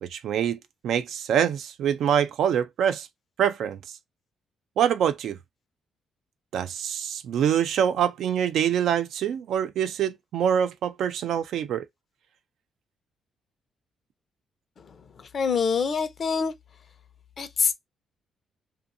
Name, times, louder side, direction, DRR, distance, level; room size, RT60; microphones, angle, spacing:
voice 1, 0.0-3.1 3.4-3.8 4.8-5.4 6.5-11.8, right 9 dB, 75° right, 0.4 m, -25 dB
voice 2, 14.8-16.5 17.4-17.7, left 5 dB, 50° left, 0.7 m, -26 dB
2.6 x 2.5 x 2.5 m
cardioid pair, 90°, 0 cm